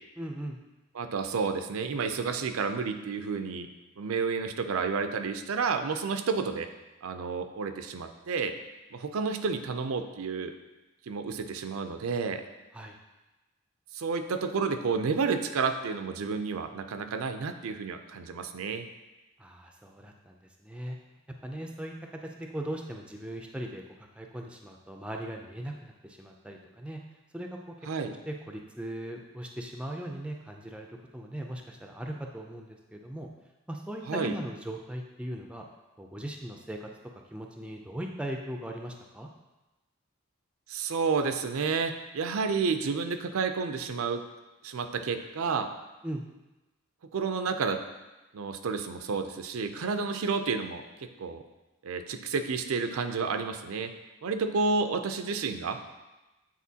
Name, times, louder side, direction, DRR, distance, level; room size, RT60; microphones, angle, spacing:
voice 1, 0.2-0.6 12.7-13.0 19.4-21.0 21.4-21.9 22.2-23.8 24.1-27.0 27.3-27.7 28.3-33.3 33.7-35.6 36.0-36.9 37.3-39.3 46.0-46.2, right 1 dB, 5° right, 2 dB, 0.4 m, -39 dB
voice 2, 0.9-3.7 4.0-6.7 7.0-8.6 8.9-10.5 11.1-12.4 13.9-18.9 27.8-28.1 34.1-34.3 40.7-44.2 44.6-45.7 47.1-47.8 48.3-51.4 51.8-53.9 54.2-55.8, right 5 dB, 80° right, 8 dB, 0.5 m, -30 dB
8.3 x 4.4 x 2.8 m, 1.1 s
head